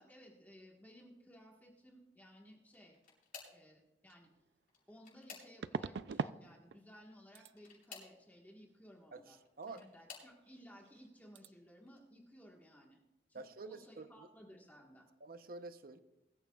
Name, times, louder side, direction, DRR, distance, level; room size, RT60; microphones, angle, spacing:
voice 1, 0.0-3.0 3.4-4.3 4.9-9.4 9.7-13.0 13.3-15.1, equal, 10° left, -2 dB, 1.5 m, -59 dB
sound 1, 2.6-3.7 4.6-5.9 7.5-8.2 9.3-10.4 11.1-11.5 11.9-12.0 13.3-13.4, left 6 dB, 50° left, 6.4 m, -55 dB
sound 2, 4.1-4.2 5.6-6.4 6.7-7.1 7.3-7.5 10.5-10.6 10.8-11.1 11.3-11.5, right 5 dB, 75° right, 0.4 m, -41 dB
voice 2, 9.1-9.9 13.3-14.3 15.2-16.0, right 3 dB, 55° right, 10 dB, 0.8 m, -49 dB
23.0 x 14.0 x 2.4 m, 0.98 s
head